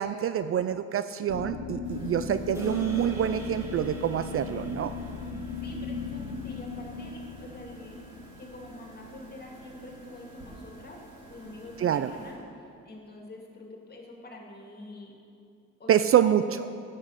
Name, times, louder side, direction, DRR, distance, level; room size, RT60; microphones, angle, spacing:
voice 1, 0.0-4.9 11.8-12.1 15.9-16.4, right 10 dB, 50° right, 12 dB, 0.4 m, -26 dB
sound 1, 1.3-9.2, left 5 dB, 85° left, 1.0 m, -37 dB
sound 2, 1.8-12.3, right 2 dB, 80° right, 2.6 m, -50 dB
voice 2, 2.0-2.4 5.6-8.0 8.4-11.0 11.3-12.4 12.8-15.2 15.8-16.4, left 2 dB, 30° left, -1 dB, 2.4 m, -46 dB
sound 3, 2.5-7.0, right 1 dB, 10° right, 2.4 m, -45 dB
10.5 x 7.7 x 6.5 m, 2.5 s
cardioid pair, 90°, 30 cm